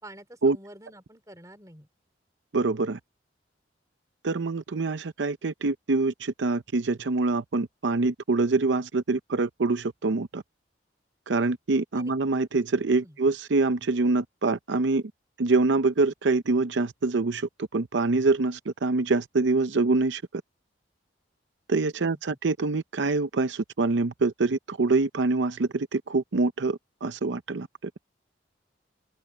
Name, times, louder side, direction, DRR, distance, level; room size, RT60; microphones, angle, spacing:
voice 1, 0.0-1.9 11.9-12.1 13.0-13.2 22.0-22.4, right 1 dB, 20° right, 3.8 m, -48 dB
voice 2, 2.5-3.0 4.2-10.4 11.3-15.0 15.4-20.4 21.7-27.7, right 3 dB, 80° right, 0.6 m, -25 dB
open air
head